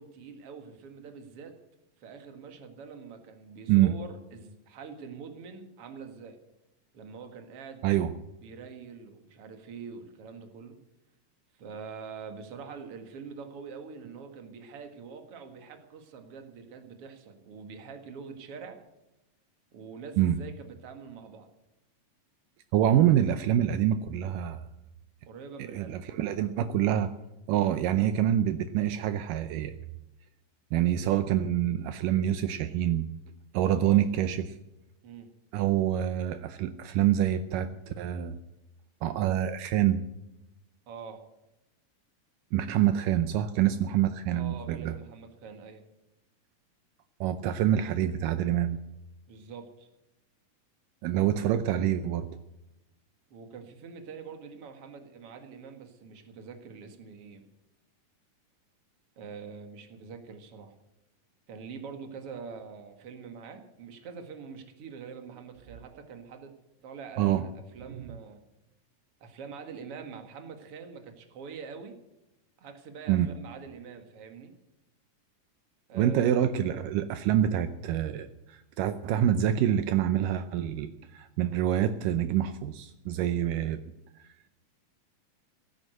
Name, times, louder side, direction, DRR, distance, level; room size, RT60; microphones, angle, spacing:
voice 1, 0.0-1.5 2.0-6.4 6.9-7.8 8.4-10.8 11.6-18.8 19.7-21.5 25.3-26.0 33.7-34.0 35.0-35.3 40.9-41.2 44.3-45.8 49.3-49.9 53.3-57.4 59.2-60.7 61.5-66.5 66.8-68.4 69.2-71.9 72.6-74.5 75.9-76.3, right 5 dB, 50° right, 6 dB, 2.4 m, -44 dB
voice 2, 22.7-24.6 25.7-27.1 27.5-29.7 30.7-33.1 33.5-34.5 35.5-38.4 39.0-40.0 42.5-44.9 47.2-48.8 51.0-52.3 67.2-67.4 73.1-73.3 75.9-83.8, right 11 dB, 80° right, 10 dB, 2.3 m, -26 dB
16.5 x 9.8 x 7.8 m, 0.95 s
omnidirectional pair, 4.0 m